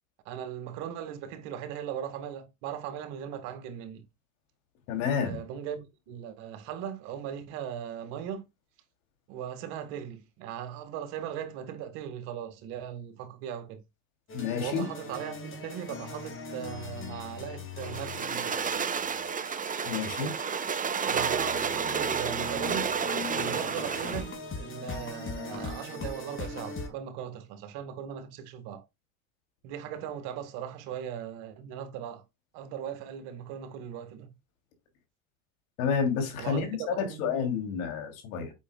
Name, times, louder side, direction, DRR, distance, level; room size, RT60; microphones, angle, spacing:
voice 1, 0.3-4.0 5.2-8.5 9.3-13.8 14.6-18.6 21.0-22.9 23.3-28.8 29.6-32.2 32.5-34.3 36.4-37.3, right 9 dB, 70° right, 1.9 m, -38 dB
voice 2, 4.9-5.4 14.3-14.9 19.8-20.3 35.8-36.7 37.0-38.5, left 6 dB, 80° left, 3.0 m, -29 dB
sound 1, 14.3-26.9, left 4 dB, 30° left, 2.7 m, -41 dB
sound 2, 17.8-24.3, right 6 dB, 20° right, 0.8 m, -31 dB
8.4 x 5.8 x 2.3 m
supercardioid pair, 100°, 41 cm